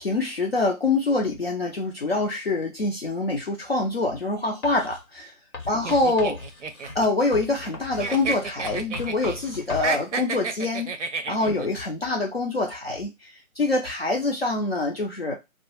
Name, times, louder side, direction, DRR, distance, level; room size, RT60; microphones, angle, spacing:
voice 1, 0.0-5.3 5.7-6.4 7.0-10.9 11.3-15.3, left 2 dB, 50° left, 0 dB, 0.4 m, -25 dB
Writing, 4.6-5.0 5.5-9.9, left 3 dB, 85° left, 1.0 m, -38 dB
sound 1, 5.8-7.7 8.0-9.4 9.7-11.7, right 4 dB, 60° right, 0.5 m, -31 dB
2.1 x 2.0 x 2.9 m, 0.22 s
figure-of-eight pair, 155°, 42 cm